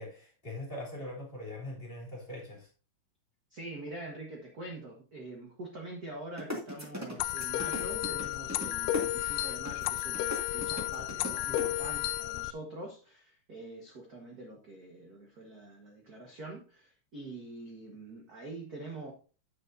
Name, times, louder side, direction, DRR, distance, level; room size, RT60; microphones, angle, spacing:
voice 1, 0.0-2.7, left 1 dB, 15° left, 3.2 m, -42 dB
voice 2, 3.5-19.1, right 2 dB, 50° right, 1.1 m, -45 dB
sound 1, 6.4-11.6, equal, 10° right, 0.7 m, -38 dB
sound 2, 7.2-12.5, left 14 dB, 80° left, 1.9 m, -33 dB
9.5 x 8.9 x 2.7 m
omnidirectional pair, 3.8 m